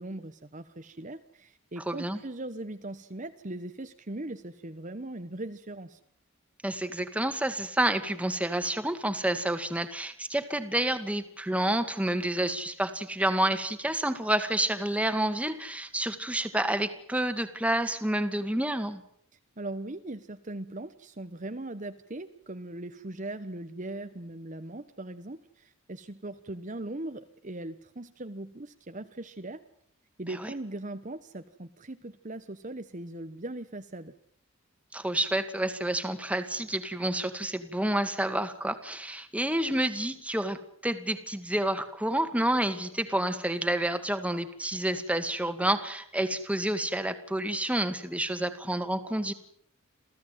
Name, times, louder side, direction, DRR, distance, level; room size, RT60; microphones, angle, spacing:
voice 1, 0.0-6.0 19.6-29.6 30.2-34.1, right 2 dB, 35° right, 8 dB, 1.1 m, -39 dB
voice 2, 1.9-2.2 6.6-19.0 30.4-30.5 34.9-49.3, right 1 dB, 5° right, 9 dB, 1.9 m, -29 dB
27.5 x 17.0 x 9.3 m, 0.65 s
head